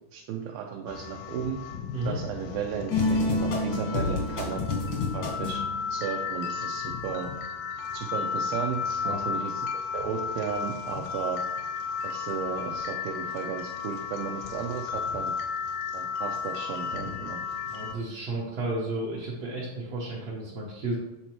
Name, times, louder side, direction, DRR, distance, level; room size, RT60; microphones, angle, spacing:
voice 1, 0.1-1.6 2.1-4.7 5.1-5.6 5.9-7.3 7.9-11.4 12.0-15.3 15.9-17.4, right 7 dB, 90° right, 1 dB, 2.3 m, -34 dB
sound 1, 0.9-17.9, left 6 dB, 80° left, 2.1 m, -34 dB
sound 2, 2.9-5.7, left 2 dB, 65° left, 1.1 m, -28 dB
voice 2, 17.6-21.0, right 2 dB, 65° right, -6 dB, 1.7 m, -32 dB
8.9 x 4.2 x 3.0 m, 0.96 s
omnidirectional pair, 4.0 m